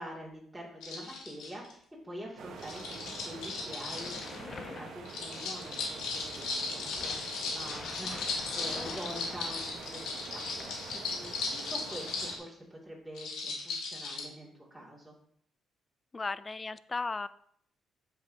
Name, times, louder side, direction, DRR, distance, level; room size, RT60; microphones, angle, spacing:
voice 1, 0.0-10.4 10.9-15.1, equal, 5° right, -7 dB, 2.4 m, -46 dB
sound 1, 0.8-1.7 2.6-4.3 5.0-12.4 13.1-14.2, left 4 dB, 85° left, 1.7 m, -37 dB
sound 2, 2.4-12.4, right 6 dB, 75° right, 1.1 m, -46 dB
sound 3, 3.9-6.2 6.9-10.1 10.6-11.2, left 4 dB, 45° left, 0.9 m, -46 dB
voice 2, 16.1-17.3, left 3 dB, 25° left, 16 dB, 0.4 m, -35 dB
8.0 x 6.9 x 2.8 m, 0.65 s
cardioid pair, 90°, 0 cm